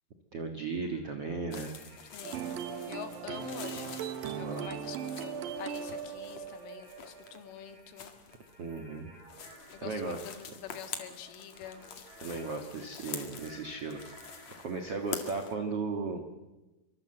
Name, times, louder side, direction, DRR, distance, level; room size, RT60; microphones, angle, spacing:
voice 1, 0.3-1.7 4.4-4.7 8.6-9.1 9.8-10.2 12.2-14.0 14.6-16.2, right 4 dB, 85° right, 6 dB, 1.3 m, -36 dB
sound 1, 0.8-2.8 4.4-15.5, right 2 dB, 25° right, 6.5 m, -58 dB
sound 2, 1.5-15.5, left 7 dB, 50° left, 2.3 m, -47 dB
voice 2, 2.1-2.5 2.9-4.0 4.4-8.1 9.7-11.9, left 9 dB, 80° left, 8 dB, 4.2 m, -46 dB
sound 3, 2.2-7.8, right 7 dB, 65° right, 2.4 m, -39 dB
24.5 x 23.5 x 7.9 m, 1.1 s
omnidirectional pair, 5.7 m